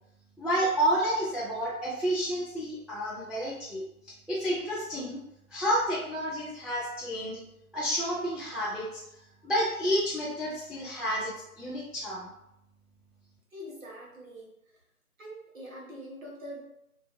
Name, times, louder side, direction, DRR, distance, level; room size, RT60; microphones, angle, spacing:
voice 1, 0.4-5.2 5.5-7.4 7.7-9.0 9.4-12.3, equal, ahead, -6 dB, 0.3 m, -30 dB
voice 2, 13.5-14.5 15.2-16.6, equal, 60° right, -3 dB, 0.9 m, -43 dB
2.5 x 2.0 x 2.5 m, 0.81 s
figure-of-eight pair, 170°, 45 cm